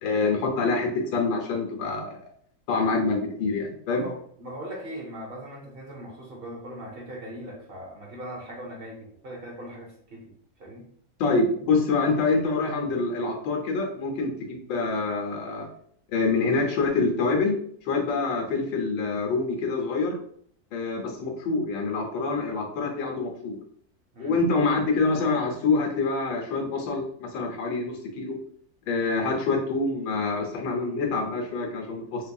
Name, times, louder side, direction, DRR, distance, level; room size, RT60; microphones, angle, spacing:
voice 1, 0.0-2.3 2.7-4.0 11.2-15.7 16.1-17.6 17.8-20.2 20.7-23.6 24.2-28.4 28.9-32.3, left 3 dB, 85° left, 2 dB, 1.5 m, -26 dB
voice 2, 3.9-10.3 10.6-10.8 24.1-24.4, equal, 55° right, -1 dB, 0.6 m, -39 dB
4.4 x 2.6 x 2.3 m, 0.62 s
omnidirectional pair, 2.0 m